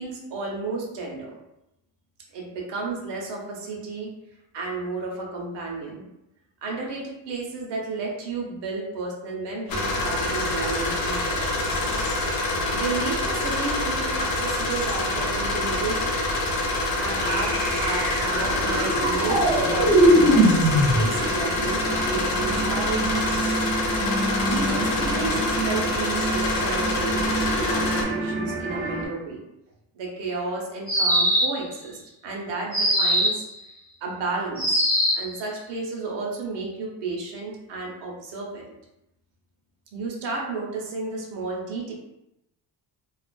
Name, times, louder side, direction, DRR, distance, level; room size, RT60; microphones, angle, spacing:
voice 1, 0.0-1.4 2.3-4.1 4.5-6.0 6.6-11.9 12.7-16.2 17.0-23.5 24.4-29.4 29.9-33.4 34.0-34.8 35.1-38.7 39.9-41.9, right 3 dB, 80° right, -1 dB, 0.8 m, -32 dB
sound 1, 9.7-28.0, left 2 dB, 55° left, 0.6 m, -26 dB
sound 2, 17.2-29.0, right 1 dB, 20° right, 0.7 m, -24 dB
sound 3, 30.9-31.7 32.7-33.5 34.6-35.3, equal, 25° left, 1.0 m, -21 dB
2.3 x 2.3 x 2.2 m, 0.87 s
cardioid pair, 160°, 41 cm